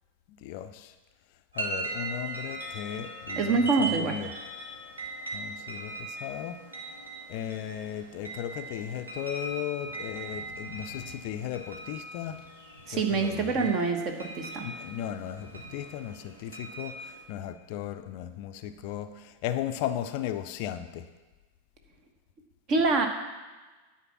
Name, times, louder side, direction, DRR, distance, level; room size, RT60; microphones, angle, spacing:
voice 1, 0.4-0.9 1.6-4.3 5.3-6.6 7.3-12.4 12.9-13.7 14.6-21.1, left 11 dB, 45° left, 10 dB, 0.5 m, -36 dB
sound 1, 1.5-17.2, right 2 dB, 75° right, 1.6 m, -39 dB
voice 2, 3.3-4.2 12.9-14.7 22.7-23.1, right 4 dB, 35° right, 5 dB, 1.3 m, -26 dB
9.8 x 4.6 x 7.3 m, 1.3 s
figure-of-eight pair, 90°, 0 cm